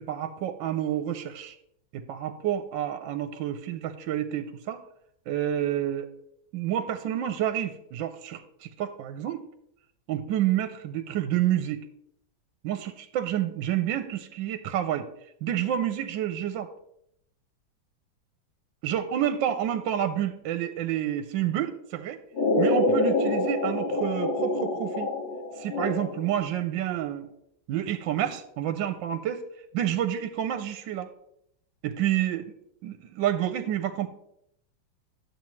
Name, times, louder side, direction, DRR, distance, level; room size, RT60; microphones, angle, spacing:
voice 1, 0.0-1.6 1.9-4.8 5.3-6.1 6.5-9.4 10.1-11.8 12.6-15.1 15.4-16.7 18.8-22.2 22.6-25.1 25.6-27.3 27.7-29.4 29.7-31.1 31.8-32.4 32.8-34.1, right 11 dB, 75° right, 8 dB, 1.3 m, -29 dB
sound 1, 22.3-26.4, left 2 dB, 70° left, 2.7 m, -26 dB
10.5 x 7.2 x 3.1 m, 0.76 s
omnidirectional pair, 2.1 m